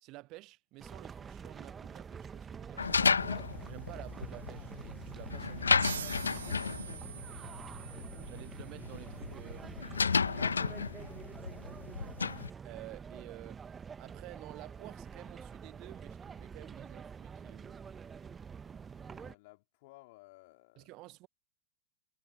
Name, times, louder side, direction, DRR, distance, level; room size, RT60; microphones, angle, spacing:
voice 1, 0.0-2.8 3.6-6.0 8.2-10.3 12.0-12.2 12.6-13.7 14.0-17.8 20.8-21.3, right 21 dB, 40° right, 0.7 m, -51 dB
sound 1, 0.8-19.3, right 6 dB, 20° right, 1.6 m, -47 dB
voice 2, 2.7-3.1 5.9-8.5 19.1-20.9, left 23 dB, 50° left, 4.9 m, -58 dB
sound 2, 2.8-12.5, left 5 dB, 75° left, 0.4 m, -33 dB
sound 3, 5.8-9.0, right 9 dB, 65° right, 0.3 m, -45 dB
figure-of-eight pair, 90°, 0 cm